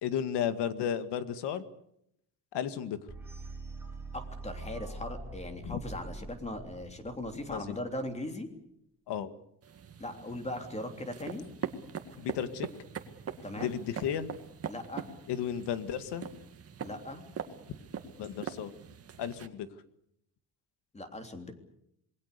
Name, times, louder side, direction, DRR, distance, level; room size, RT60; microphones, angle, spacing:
voice 1, 0.0-1.6 2.5-3.0 5.6-5.8 7.5-7.8 9.1-9.3 12.2-12.7 13.6-14.3 15.3-16.3 18.2-18.7 19.2-19.7, left 9 dB, 85° left, 11 dB, 2.1 m, -33 dB
sound 1, 3.1-8.0, right 2 dB, 5° right, 3.8 m, -44 dB
voice 2, 4.1-8.5 10.0-11.4 13.4-13.8 14.7-15.1 16.8-17.2 20.9-21.5, left 1 dB, 15° left, 6 dB, 3.2 m, -39 dB
sound 2, 9.6-19.5, right 7 dB, 35° right, 2.0 m, -42 dB
27.0 x 21.5 x 6.8 m, 0.76 s
cardioid pair, 155°, 40 cm